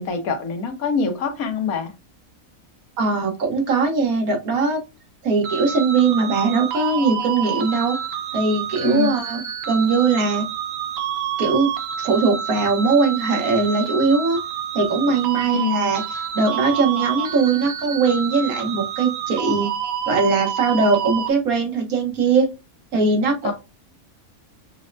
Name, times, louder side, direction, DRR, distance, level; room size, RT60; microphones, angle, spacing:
voice 1, 0.0-1.9 8.8-9.1 15.4-15.9 23.4-23.5, left 5 dB, 85° left, 1.3 m, -24 dB
voice 2, 3.0-4.8 5.2-8.0 8.3-10.5 11.4-11.7 12.0-14.4 14.7-19.7 20.1-22.5 22.9-23.5, right 4 dB, 90° right, 1.4 m, -20 dB
sound 1, 5.4-21.3, right 8 dB, 60° right, 0.7 m, -28 dB
6.1 x 2.1 x 2.5 m
omnidirectional pair, 1.5 m